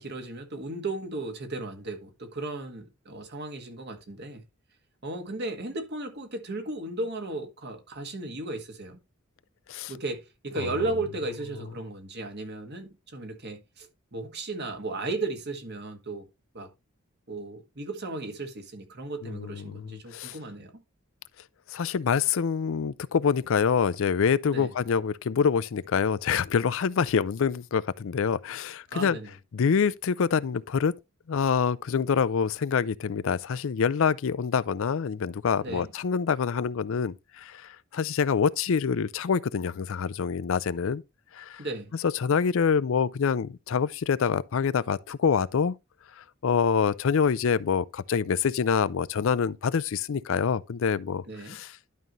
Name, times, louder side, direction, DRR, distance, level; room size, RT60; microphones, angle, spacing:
voice 1, 0.0-4.4 5.0-9.0 9.9-16.3 16.5-16.7 17.3-20.7 24.5-24.7 28.9-29.3 35.6-35.9 41.6-41.9 51.3-51.6, right 2 dB, 55° right, 1.7 m, -35 dB
voice 2, 19.2-20.4 21.7-29.2 29.5-30.9 31.3-41.0 41.3-41.6 42.0-45.7 46.2-51.7, left 6 dB, 65° left, 0.4 m, -26 dB
11.5 x 5.4 x 3.1 m
head